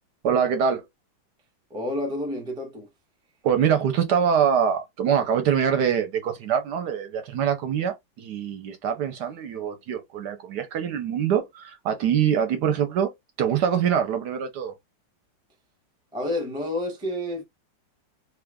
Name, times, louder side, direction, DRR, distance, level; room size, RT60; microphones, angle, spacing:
voice 1, 0.2-0.8 3.4-13.1 13.4-14.7, right 8 dB, 65° right, 1.2 m, -24 dB
voice 2, 1.7-2.9 16.1-17.4, left 1 dB, 5° right, 0.5 m, -29 dB
3.1 x 2.4 x 3.4 m
omnidirectional pair, 2.1 m